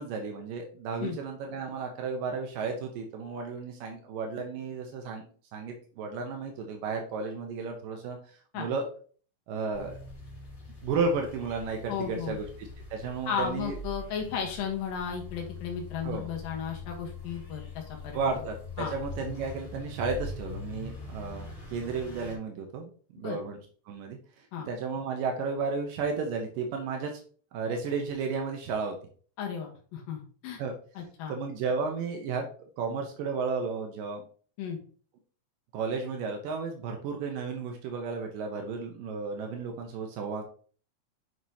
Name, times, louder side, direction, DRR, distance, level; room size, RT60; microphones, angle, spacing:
voice 1, 0.0-5.2 5.5-8.2 8.6-8.8 9.5-10.0 10.8-13.8 16.0-16.3 18.1-23.6 23.9-24.2 24.7-27.1 27.5-29.0 30.6-30.7 31.3-32.5 32.8-34.2 35.7-40.4, right 4 dB, 80° right, 3 dB, 2.6 m, -33 dB
sound 1, 9.7-22.4, left 2 dB, 35° left, 4.2 m, -43 dB
voice 2, 11.9-12.4 13.3-18.4 18.8-18.9 23.2-23.4 24.5-24.7 29.4-30.6 31.0-31.4 34.6-34.8, left 7 dB, 85° left, 1 dB, 3.1 m, -34 dB
9.3 x 5.5 x 2.9 m, 0.43 s
omnidirectional pair, 3.9 m